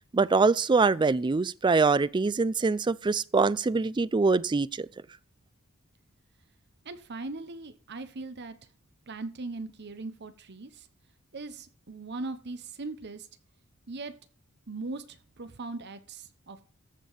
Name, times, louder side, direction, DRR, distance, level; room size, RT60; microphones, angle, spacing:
voice 1, 0.1-4.9, right 4 dB, 20° right, 0.4 m, -24 dB
voice 2, 6.8-8.6 9.1-10.9 11.3-13.3 13.9-14.1 14.7-16.6, right 3 dB, 55° right, 1.0 m, -39 dB
14.0 x 5.3 x 5.6 m
head